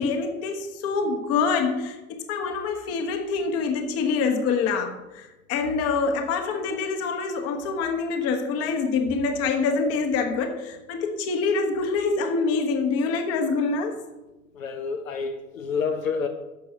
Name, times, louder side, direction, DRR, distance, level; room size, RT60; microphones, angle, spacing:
voice 1, 0.0-14.0, left 4 dB, 35° left, 5 dB, 1.2 m, -25 dB
voice 2, 14.5-16.3, left 5 dB, 65° left, 5 dB, 1.0 m, -28 dB
12.5 x 6.7 x 2.8 m, 1.1 s
figure-of-eight pair, 90°, 44 cm